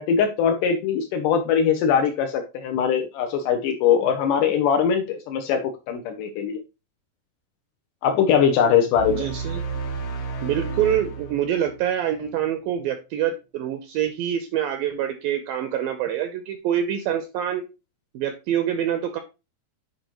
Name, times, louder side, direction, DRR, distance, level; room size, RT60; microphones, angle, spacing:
voice 1, 0.0-6.6 8.0-9.3, left 7 dB, 85° left, 6 dB, 1.9 m, -21 dB
sound 1, 8.9-12.3, right 4 dB, 60° left, 1.8 m, -32 dB
voice 2, 9.1-9.6 10.4-17.6 18.1-19.2, right 10 dB, 80° right, 7 dB, 2.1 m, -25 dB
9.3 x 4.9 x 3.0 m, 0.27 s
omnidirectional pair, 4.8 m